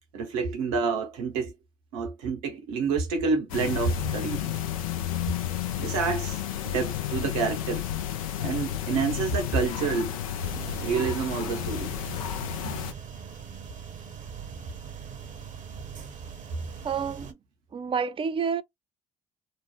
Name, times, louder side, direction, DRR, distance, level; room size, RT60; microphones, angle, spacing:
voice 1, 0.1-1.5 1.9-4.6 5.8-7.8 8.4-10.1 10.8-11.9, right 5 dB, 80° right, 0.9 m, -28 dB
sound 1, 3.5-12.9, left 11 dB, 90° left, 0.4 m, -32 dB
sound 2, 10.4-17.3, right 7 dB, 45° right, 0.8 m, -41 dB
voice 2, 16.8-17.3 17.7-18.6, right 6 dB, 30° right, 0.4 m, -28 dB
2.6 x 2.0 x 3.1 m
hypercardioid pair, 50°, 17 cm